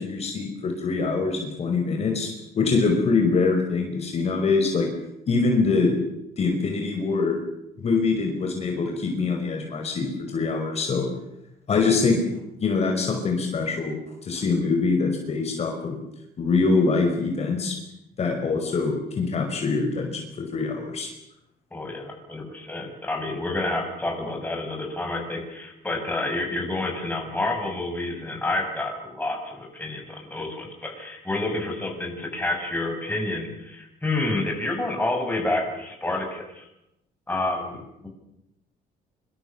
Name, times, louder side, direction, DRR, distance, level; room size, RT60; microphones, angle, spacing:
voice 1, 0.0-2.3 2.5-4.9 5.3-5.9 6.4-7.4 7.8-11.1 11.7-12.2 12.6-14.0 14.2-16.0 16.4-17.7 18.2-21.1, left 4 dB, 40° left, 2 dB, 5.4 m, -24 dB
voice 2, 21.7-36.7 37.3-38.1, left 2 dB, 10° left, 2 dB, 7.6 m, -29 dB
26.5 x 25.5 x 7.1 m, 0.84 s
cardioid pair, 130°, 16 cm